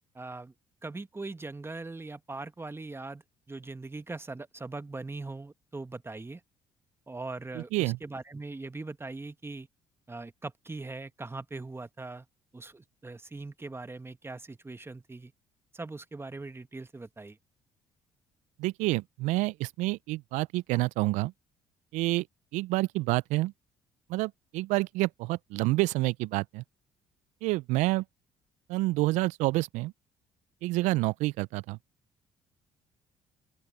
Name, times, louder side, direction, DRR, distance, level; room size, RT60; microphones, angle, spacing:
voice 1, 0.1-0.5 0.8-3.2 3.5-6.4 7.1-9.7 10.1-12.2 12.5-15.3 15.7-17.4, right 3 dB, 20° right, 1.6 m, -41 dB
voice 2, 7.5-8.0 18.6-21.3 21.9-22.2 22.5-23.5 24.1-26.6 27.4-28.0 28.7-29.9 30.6-31.8, right 20 dB, 75° right, 0.6 m, -28 dB
open air
hypercardioid pair, 55°, 13 cm